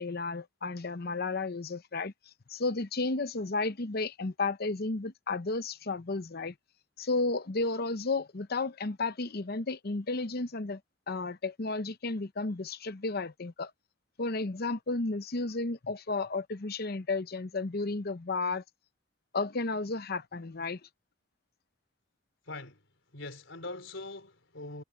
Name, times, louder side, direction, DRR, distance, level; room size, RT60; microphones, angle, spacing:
voice 1, 0.0-2.1 2.5-6.5 7.0-10.8 11.1-13.7 14.2-18.6 19.3-20.8, left 3 dB, 50° left, 0.8 m, -33 dB
voice 2, 23.1-24.8, left 2 dB, 70° left, 4.6 m, -42 dB
head